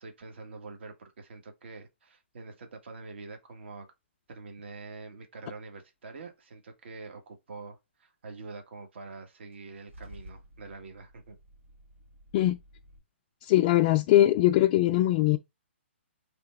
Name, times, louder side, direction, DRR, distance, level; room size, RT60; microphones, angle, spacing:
voice 1, 0.0-3.9 4.3-11.4, right 3 dB, 60° right, 1.5 m, -45 dB
Car / Engine starting / Idling, 9.5-13.0, equal, 85° right, 2.8 m, -52 dB
voice 2, 13.4-15.4, left 14 dB, 30° left, 0.3 m, -21 dB
3.8 x 3.3 x 3.5 m
hypercardioid pair, 145°, 7 cm